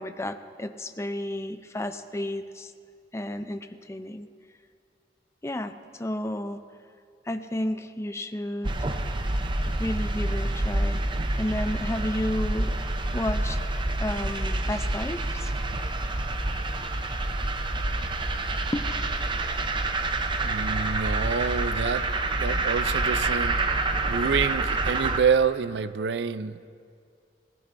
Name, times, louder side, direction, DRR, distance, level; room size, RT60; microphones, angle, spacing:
voice 1, 0.0-2.7 3.1-4.3 5.4-6.6 7.3-8.7 9.8-11.0 11.4-12.7 13.1-13.6 14.0-15.5 18.7-18.8, left 1 dB, 15° left, 9 dB, 0.5 m, -32 dB
sound 1, 8.6-25.2, right 2 dB, 30° right, 0.7 m, -27 dB
voice 2, 20.4-22.0 22.3-23.6 24.0-26.7, right 6 dB, 70° right, 14 dB, 0.4 m, -27 dB
18.5 x 17.0 x 2.6 m, 2.3 s
head